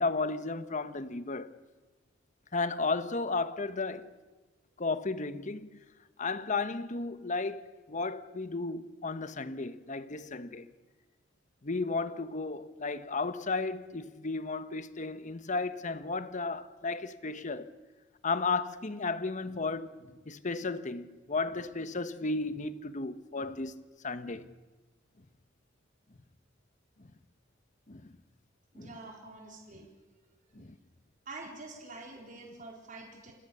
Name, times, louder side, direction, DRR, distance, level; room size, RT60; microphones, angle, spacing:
voice 1, 0.0-1.6 2.5-4.1 4.8-5.8 6.2-10.7 11.6-17.7 18.2-19.9 20.3-24.5 27.9-28.1 28.7-28.9 30.5-30.7, left 3 dB, 40° left, 1.1 m, -34 dB
voice 2, 28.7-29.9 30.5-30.6 31.3-33.3, right 2 dB, 40° right, 3.9 m, -46 dB
29.0 x 20.5 x 6.9 m
head